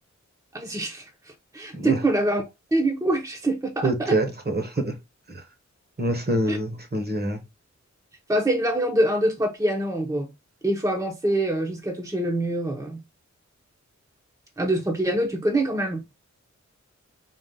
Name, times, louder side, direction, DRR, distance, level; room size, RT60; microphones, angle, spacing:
voice 1, 0.5-1.0 1.5-2.4 2.7-4.2 6.5-6.6 8.3-10.3 10.6-13.0 14.6-16.0, right 1 dB, 10° right, 0.8 m, -24 dB
voice 2, 3.8-4.9 5.3-5.4 6.0-7.4, right 1 dB, 35° right, 1.0 m, -25 dB
4.0 x 2.4 x 3.6 m
wide cardioid pair, 95°, 29 cm